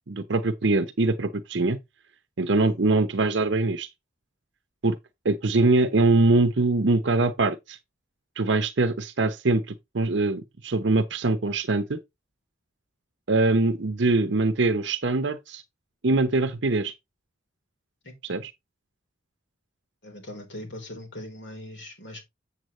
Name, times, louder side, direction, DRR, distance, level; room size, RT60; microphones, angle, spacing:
voice 1, 0.1-1.8 2.4-3.9 4.8-5.0 5.2-7.8 8.4-12.0 13.3-15.6 16.0-16.9 18.2-18.5, right 2 dB, 60° right, 0.7 m, -23 dB
voice 2, 20.0-22.2, left 1 dB, 60° left, 3.7 m, -40 dB
7.8 x 7.2 x 3.1 m
head